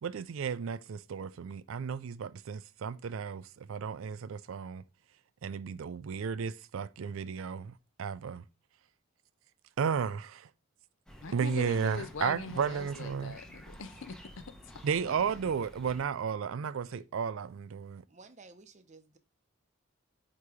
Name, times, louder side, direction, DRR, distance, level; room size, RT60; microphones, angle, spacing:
voice 1, 0.0-4.8 5.4-7.7 8.0-8.4 9.8-10.5 11.3-13.4 14.8-18.0, right 6 dB, 70° right, 0.4 m, -33 dB
sound 1, 11.1-16.1, equal, 5° left, 0.8 m, -51 dB
voice 2, 11.2-14.5 15.1-15.2, left 5 dB, 60° left, 0.5 m, -41 dB
voice 3, 18.1-19.2, right 3 dB, 35° right, 0.7 m, -54 dB
8.1 x 3.0 x 4.8 m
head